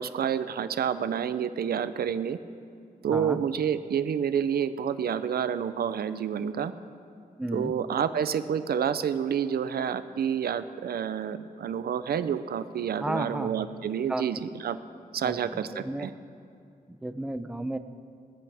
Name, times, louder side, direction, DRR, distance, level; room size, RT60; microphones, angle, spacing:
voice 1, 0.0-2.4 3.0-6.7 7.5-14.8 15.1-16.1, right 8 dB, 85° right, 12 dB, 0.6 m, -29 dB
voice 2, 3.1-3.4 7.4-7.7 13.0-13.7 14.1-14.3 15.2-16.1 16.9-17.8, right 1 dB, 5° right, 10 dB, 0.5 m, -33 dB
19.5 x 15.0 x 3.5 m, 2.4 s
wide cardioid pair, 120°, 16 cm